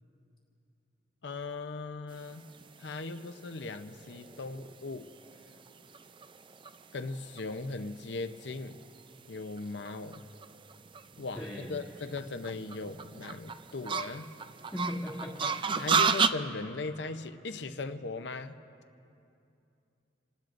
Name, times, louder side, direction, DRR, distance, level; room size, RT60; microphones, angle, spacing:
voice 1, 1.2-2.5 2.8-5.1 6.9-8.8 9.3-10.2 11.2-14.3 15.8-18.6, left 3 dB, 70° left, 9 dB, 0.7 m, -38 dB
sound 1, 2.4-16.3, right 5 dB, 30° right, 0.4 m, -34 dB
voice 2, 11.3-11.8 14.7-15.5 16.0-16.2, left 1 dB, 5° left, -7 dB, 1.8 m, -38 dB
28.0 x 19.5 x 2.6 m, 2.7 s
head